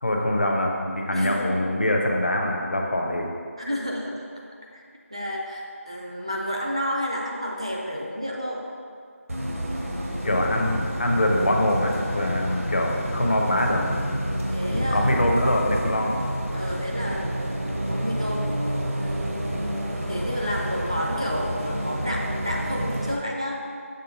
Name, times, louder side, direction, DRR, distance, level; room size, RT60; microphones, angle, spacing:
voice 1, 0.0-3.3 10.2-13.8 14.7-16.1, left 1 dB, 45° left, 1 dB, 0.7 m, -24 dB
voice 2, 1.1-1.5 3.6-4.2 4.7-4.8 5.1-8.6 14.5-15.1 16.5-17.5 17.9-18.5 19.0-19.5 20.1-23.6, equal, 25° right, -2 dB, 0.3 m, -30 dB
Bus, 9.3-23.2, equal, 70° right, 1.1 m, -29 dB
6.7 x 3.3 x 5.1 m, 2.2 s
figure-of-eight pair, 175°, 8 cm